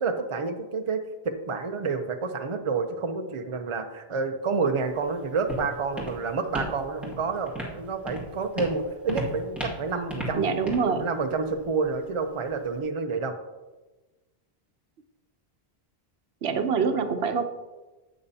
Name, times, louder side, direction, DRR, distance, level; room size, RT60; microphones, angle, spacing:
voice 1, 0.0-13.3, right 4 dB, 35° right, 6 dB, 0.7 m, -29 dB
Walk footsteps, 4.8-12.8, equal, ahead, 1.8 m, -38 dB
voice 2, 10.3-11.1 16.4-17.4, right 5 dB, 80° right, 8 dB, 1.0 m, -25 dB
12.0 x 8.7 x 2.8 m, 1.2 s
omnidirectional pair, 1.1 m